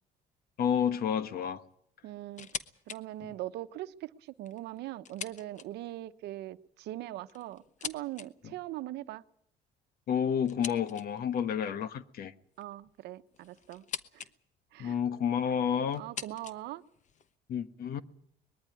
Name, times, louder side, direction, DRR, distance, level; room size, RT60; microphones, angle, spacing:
voice 1, 0.6-1.6 10.1-12.3 14.8-16.0 17.5-18.0, left 8 dB, 65° left, 1.3 m, -30 dB
voice 2, 2.0-2.5 2.9-9.2 12.6-13.8 14.1-14.3 14.7-15.0 16.0-16.8, right 15 dB, 80° right, 0.9 m, -41 dB
sound 1, 2.3-3.0 3.4-3.5 4.3-6.0 6.9-8.3 10.5-11.3 12.5-14.3 14.6-15.2 15.9-17.3, left 8 dB, 45° left, 1.1 m, -43 dB
21.0 x 14.0 x 9.7 m
cardioid pair, 110°, 17 cm